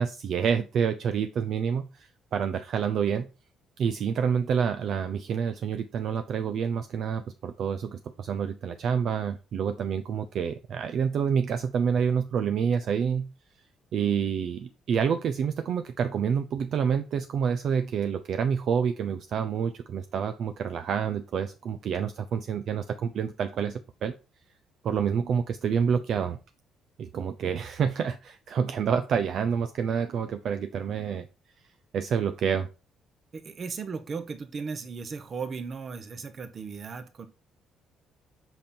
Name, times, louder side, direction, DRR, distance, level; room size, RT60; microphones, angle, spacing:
voice 1, 0.0-3.3 3.8-13.3 13.9-24.1 24.8-26.4 27.0-31.3 31.9-32.7, right 7 dB, 50° right, 0.6 m, -28 dB
voice 2, 33.3-37.3, right 5 dB, 35° right, 1.1 m, -36 dB
8.0 x 5.4 x 4.4 m
cardioid pair, 165°, 0 cm